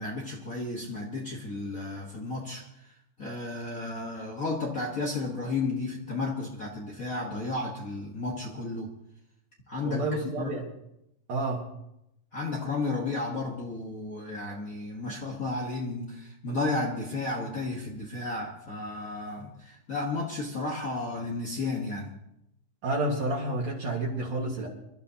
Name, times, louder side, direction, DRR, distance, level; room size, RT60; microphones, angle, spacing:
voice 1, 0.0-2.7 3.2-8.9 9.7-10.5 12.3-22.1, left 3 dB, 85° left, -2 dB, 0.7 m, -33 dB
voice 2, 9.8-10.7 11.3-11.6 22.8-24.7, right 2 dB, 55° right, -2 dB, 2.7 m, -29 dB
27.5 x 12.0 x 2.8 m, 0.83 s
omnidirectional pair, 4.0 m